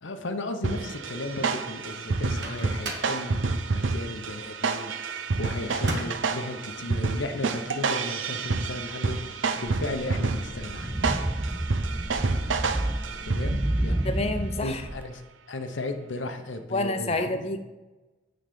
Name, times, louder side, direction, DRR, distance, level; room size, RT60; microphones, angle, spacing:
voice 1, 0.0-11.1 13.3-14.0 14.6-17.3, left 2 dB, 80° left, 7 dB, 0.9 m, -35 dB
sound 1, 0.6-13.8, right 4 dB, 85° right, 0.7 m, -29 dB
Microwave oven, 2.1-3.2 5.7-6.3, right 2 dB, 65° right, 1.4 m, -36 dB
sound 2, 9.7-15.0, right 1 dB, 10° right, 0.3 m, -30 dB
voice 2, 14.0-14.8 16.7-17.6, left 2 dB, 30° left, 8 dB, 0.7 m, -28 dB
9.1 x 4.0 x 6.9 m, 1.1 s
head